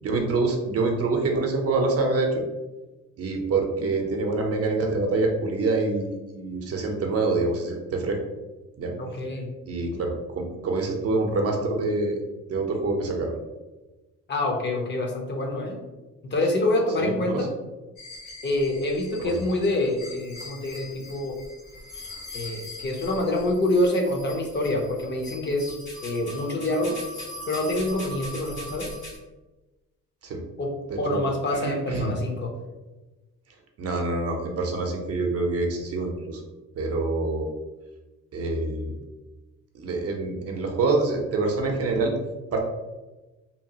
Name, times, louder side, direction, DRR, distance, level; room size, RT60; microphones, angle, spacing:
voice 1, 0.0-2.4 3.2-8.2 8.8-8.9 9.6-12.2 12.5-13.3 17.0-17.5 19.2-19.4 22.3-22.5 30.2-30.4 31.1-32.1 33.8-36.4 36.8-37.5 38.3-38.9 39.7-42.1 42.5-42.6, right 3 dB, 50° right, 1 dB, 0.6 m, -26 dB
voice 2, 9.0-9.5 14.3-15.8 16.2-17.5 18.4-21.4 22.3-25.8 26.0-27.0 27.5-29.0 30.6-32.5, left 1 dB, 35° left, 1 dB, 0.6 m, -26 dB
sound 1, 18.0-29.2, left 1 dB, 80° left, 1.4 m, -41 dB
2.8 x 2.3 x 2.7 m, 1.1 s
cardioid pair, 90°, 30 cm